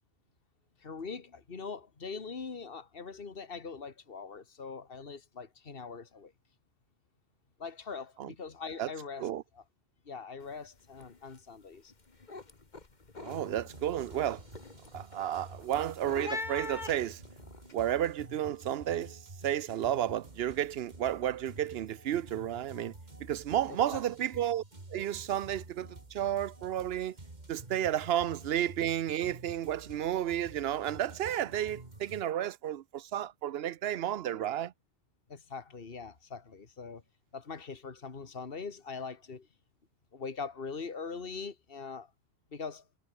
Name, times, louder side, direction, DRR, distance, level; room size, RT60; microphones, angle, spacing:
voice 1, 0.8-6.3 7.6-9.6 10.1-11.9 23.7-24.0 35.3-37.0 37.3-39.5 40.1-42.1 42.5-42.8, left 5 dB, 65° left, 2.0 m, -42 dB
sound 1, 10.4-10.7 10.9-11.4 11.8-17.7, left 3 dB, 45° left, 2.0 m, -44 dB
voice 2, 13.2-14.4 14.9-17.2 17.7-22.9 23.2-24.6 24.9-27.2 27.5-34.7, right 11 dB, 75° right, 0.9 m, -32 dB
sound 2, 13.3-32.2, right 2 dB, 45° right, 2.9 m, -50 dB
omnidirectional pair, 1.1 m